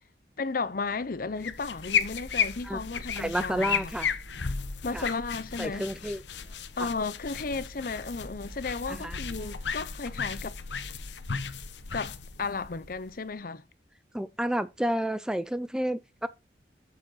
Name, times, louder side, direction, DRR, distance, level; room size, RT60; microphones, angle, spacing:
voice 1, 0.4-3.9 4.8-5.9 6.8-10.6 11.9-13.6, left 4 dB, 55° left, 0.7 m, -34 dB
sound 1, 0.6-12.3, right 1 dB, 50° right, 1.3 m, -50 dB
sound 2, 1.4-13.3, left 7 dB, 85° left, 0.9 m, -34 dB
voice 2, 3.2-4.1 4.9-5.1 5.6-6.2 8.9-9.2 14.1-16.3, right 1 dB, 5° right, 0.3 m, -30 dB
7.7 x 6.9 x 4.0 m
head